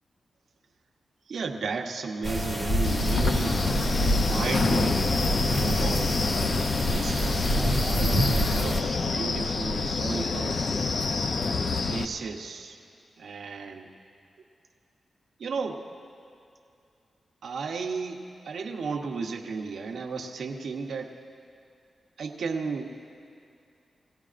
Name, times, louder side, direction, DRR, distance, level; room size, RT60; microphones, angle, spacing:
voice 1, 1.3-3.6 4.2-6.5 6.9-10.7 11.9-12.8 13.2-13.9 15.4-15.9 17.4-21.1 22.2-23.0, right 4 dB, 75° right, 3 dB, 0.9 m, -34 dB
sound 1, 2.2-8.8, equal, 30° left, 1.3 m, -27 dB
Wind, 2.8-12.0, left 4 dB, 50° left, 0.5 m, -27 dB
21.5 x 16.5 x 2.5 m, 2.5 s
wide cardioid pair, 160°, 0 cm